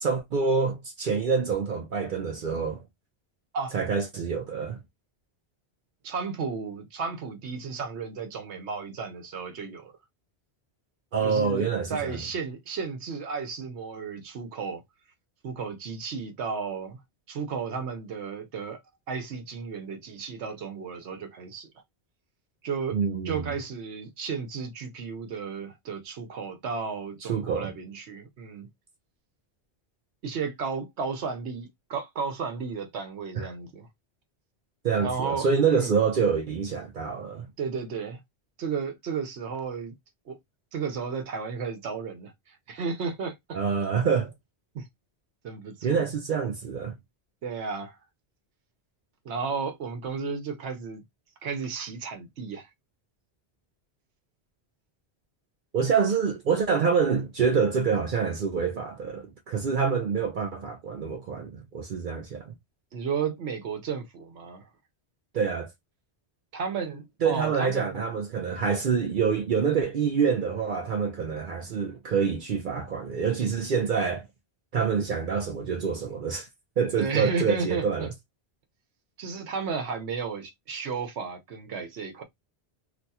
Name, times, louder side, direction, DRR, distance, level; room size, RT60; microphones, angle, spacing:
voice 1, 0.0-2.8 3.7-4.8 11.1-12.2 22.9-23.5 27.3-27.7 33.4-33.5 34.8-37.5 43.5-44.3 45.8-46.9 55.7-62.5 65.3-65.7 67.2-74.3 74.7-76.5 76.8-78.1, right 6 dB, 55° right, 0.6 m, -26 dB
voice 2, 6.0-9.9 11.2-14.8 15.4-17.0 17.3-18.8 19.1-21.7 22.6-23.0 23.2-28.7 30.2-33.9 35.0-36.0 37.6-38.2 38.6-39.9 40.3-40.4 40.7-43.6 44.7-44.9 45.4-46.1 47.4-48.0 49.2-51.0 51.4-52.7 62.9-64.7 66.5-68.1 77.0-78.1 79.2-82.2, right 5 dB, 80° right, 1.0 m, -33 dB
2.5 x 2.3 x 4.0 m
omnidirectional pair, 1.1 m